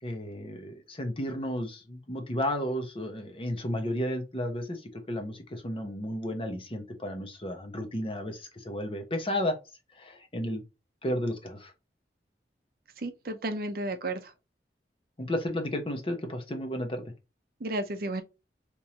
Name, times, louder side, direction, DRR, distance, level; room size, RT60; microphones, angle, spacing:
voice 1, 0.0-9.6 9.9-10.6 11.0-11.7 15.2-17.0, left 1 dB, 30° left, 0.8 m, -33 dB
voice 2, 13.0-14.3 17.6-18.2, right 1 dB, 55° right, 0.6 m, -33 dB
3.5 x 3.0 x 2.8 m
head